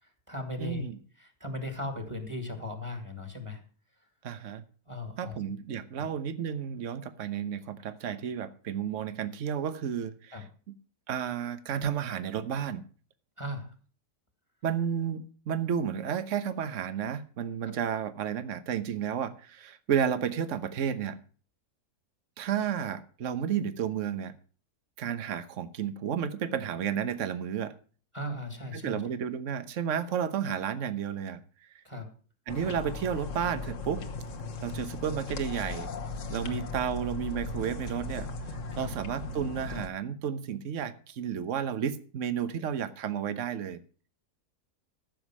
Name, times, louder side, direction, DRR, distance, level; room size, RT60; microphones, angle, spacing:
voice 1, 0.0-0.9 1.2-3.6 4.9-5.4 6.0-6.1 10.3-10.4 13.4-13.7 17.7-17.8 28.1-29.0 31.8-32.1 36.4-36.6 38.7-38.9, left 1 dB, 20° right, 2.1 m, -37 dB
voice 2, 0.6-1.0 4.2-4.6 5.2-10.4 11.1-12.8 14.6-21.2 22.4-24.3 25.0-27.7 28.7-31.4 32.5-34.0 34.6-35.9 36.3-38.3 38.8-43.8, right 8 dB, 55° right, 1.3 m, -32 dB
sound 1, 32.5-39.9, left 3 dB, 55° left, 1.5 m, -37 dB
14.5 x 7.1 x 6.2 m
omnidirectional pair, 1.7 m